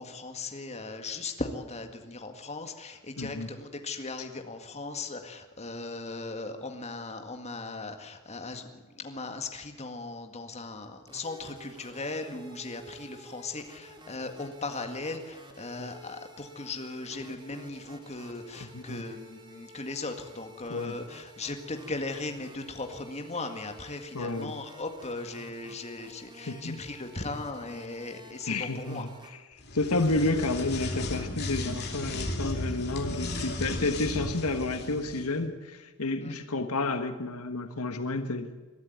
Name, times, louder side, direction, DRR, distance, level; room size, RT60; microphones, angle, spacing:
voice 1, 0.0-29.1 36.2-36.4, left 3 dB, 30° left, 5 dB, 1.9 m, -38 dB
voice 2, 3.2-3.5 18.7-19.0 20.7-20.9 24.1-24.5 26.5-26.8 28.5-29.1 29.5-38.5, left 2 dB, 75° left, 8 dB, 1.4 m, -30 dB
sound 1, 10.8-29.3, right 1 dB, 20° right, 2.8 m, -51 dB
sound 2, 29.6-35.3, left 1 dB, 50° left, 2.8 m, -35 dB
22.5 x 13.0 x 9.4 m, 1.3 s
head